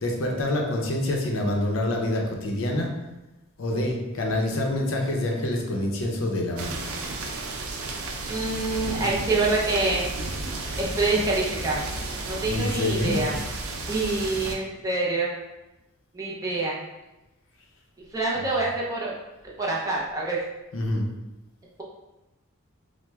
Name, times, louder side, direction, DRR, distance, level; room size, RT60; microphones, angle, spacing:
voice 1, 0.0-2.9 3.6-6.9 12.5-13.2 20.7-21.1, left 1 dB, 70° left, 0 dB, 0.6 m, -26 dB
sound 1, 6.6-14.5, right 2 dB, 85° right, 0.5 m, -33 dB
voice 2, 8.3-10.1 10.8-11.8 12.3-13.4 13.9-15.3 16.1-16.8 18.1-19.1 19.6-20.4, right 2 dB, 15° right, -4 dB, 0.6 m, -26 dB
6.0 x 2.1 x 2.3 m, 0.99 s
head